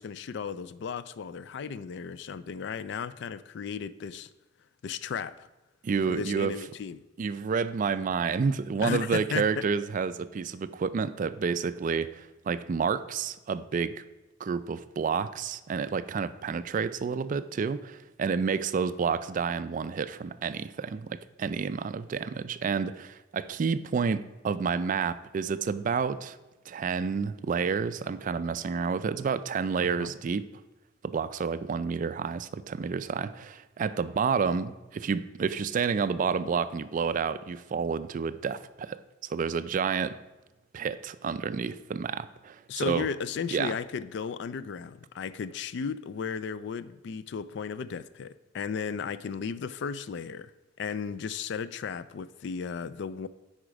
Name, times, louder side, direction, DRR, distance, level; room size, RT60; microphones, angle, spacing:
voice 1, 0.0-4.3 4.8-5.5 6.0-7.0 8.8-9.5 29.8-30.1 42.7-50.5 50.8-53.3, left 6 dB, 65° left, 0.3 m, -35 dB
voice 2, 5.8-6.5 7.2-14.0 14.4-26.4 26.7-30.4 31.0-39.0 39.3-40.2 40.7-43.1 43.5-43.8, right 5 dB, 40° right, 0.3 m, -30 dB
9.5 x 4.3 x 5.0 m
head